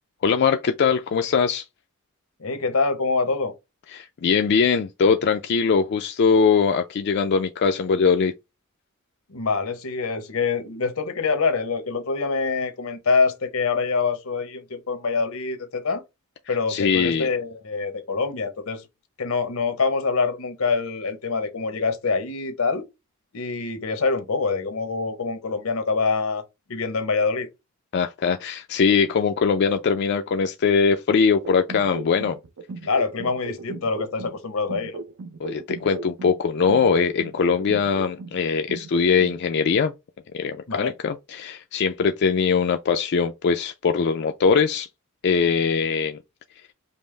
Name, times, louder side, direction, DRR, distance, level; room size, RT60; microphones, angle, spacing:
voice 1, 0.2-1.7 3.9-8.3 16.7-17.3 27.9-32.4 35.4-39.9 40.3-44.9 45.2-46.2, left 5 dB, 55° left, 0.4 m, -21 dB
voice 2, 2.4-3.5 9.3-16.0 16.5-18.9 19.2-22.8 23.3-26.4 26.7-27.5 32.9-35.0 40.7-40.9, left 4 dB, 85° left, 0.9 m, -25 dB
sound 1, 31.4-34.4 34.7-38.4 38.7-39.4, right 3 dB, 60° right, 0.5 m, -37 dB
5.3 x 2.0 x 3.1 m
head